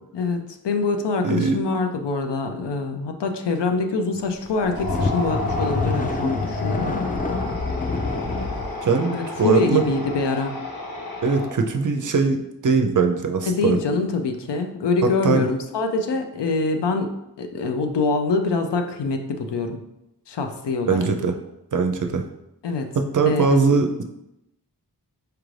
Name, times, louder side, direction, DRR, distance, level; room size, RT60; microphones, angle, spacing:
voice 1, 0.1-7.0 9.1-10.6 13.5-17.1 17.4-19.8 20.3-21.0 22.6-22.9 23.3-23.6, left 3 dB, 75° left, 5 dB, 0.6 m, -24 dB
voice 2, 1.2-1.6 8.8-9.1 9.4-9.8 11.2-13.8 15.2-15.5 20.9-21.3 21.7-22.2 22.9-24.0, right 4 dB, 50° right, 5 dB, 0.5 m, -21 dB
sound 1, 4.5-8.7, left 3 dB, 20° left, 0.3 m, -27 dB
sound 2, 4.6-11.8, left 2 dB, 55° left, 0.9 m, -31 dB
4.6 x 2.5 x 3.2 m, 0.87 s
wide cardioid pair, 60°, 42 cm